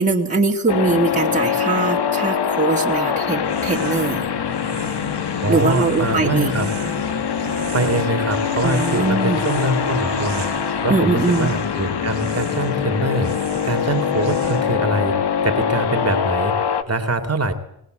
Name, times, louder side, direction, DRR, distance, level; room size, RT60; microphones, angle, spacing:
voice 1, 0.0-4.3 5.5-6.5 8.6-9.4 10.9-11.5, right 3 dB, 15° right, -2 dB, 2.4 m, -21 dB
sound 1, 0.7-16.8, left 7 dB, 55° left, 1.5 m, -23 dB
sound 2, 3.4-14.9, right 8 dB, 70° right, 1.8 m, -37 dB
voice 2, 5.4-6.7 7.7-10.4 10.8-13.3 13.6-15.2 15.4-16.5 16.9-17.5, right 2 dB, 30° right, 6 dB, 2.6 m, -23 dB
19.5 x 19.5 x 8.0 m, 0.77 s
cardioid pair, 70°, 48 cm